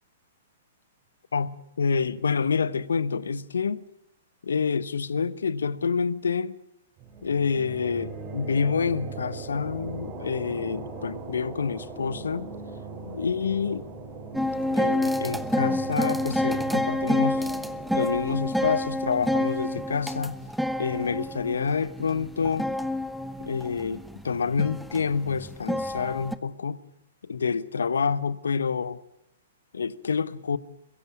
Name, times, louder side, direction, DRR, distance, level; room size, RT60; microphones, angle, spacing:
voice 1, 1.3-3.8 4.4-6.6 7.2-12.5 13.0-13.9 14.7-17.5 17.9-20.4 20.8-22.7 23.4-26.8 27.2-29.0 29.7-30.6, left 5 dB, 80° left, 0.9 m, -28 dB
sound 1, 7.0-20.4, right 4 dB, 30° right, 4.4 m, -40 dB
sound 2, 14.3-26.4, left 1 dB, ahead, 1.0 m, -28 dB
22.5 x 16.5 x 9.3 m
hypercardioid pair, 120°, 0 cm